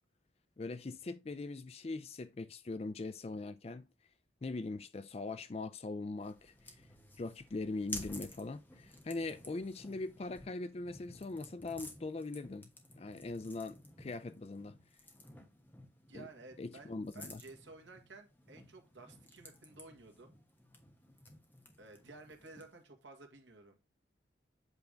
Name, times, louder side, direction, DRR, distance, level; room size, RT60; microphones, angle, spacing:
voice 1, 0.6-3.8 4.4-6.7 7.2-12.7 13.0-14.8 16.1-16.3 16.6-17.4, left 3 dB, 30° left, 0.4 m, -41 dB
sound 1, 6.2-22.8, left 1 dB, 10° left, 1.1 m, -53 dB
voice 2, 16.1-20.3 21.8-23.8, right 3 dB, 80° right, 1.6 m, -54 dB
8.1 x 3.4 x 5.1 m
head